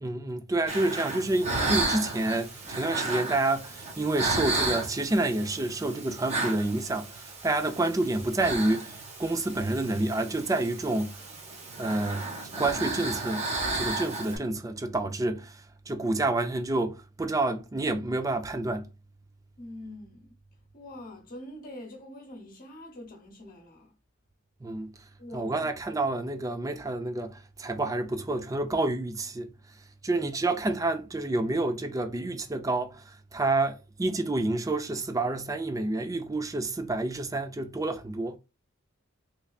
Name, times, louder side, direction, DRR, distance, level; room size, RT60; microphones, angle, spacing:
voice 1, 0.0-11.2 11.8-12.3 12.6-13.5 13.7-15.6 15.9-18.9 24.6-24.9 25.3-29.5 30.0-33.0 33.3-38.4, right 2 dB, 15° right, 0.3 m, -28 dB
sound 1, 0.7-14.4, right 2 dB, 30° right, 0.9 m, -33 dB
voice 2, 19.6-20.3 20.7-23.9 25.2-25.5, left 1 dB, 40° left, 1.0 m, -44 dB
3.6 x 3.2 x 2.3 m
head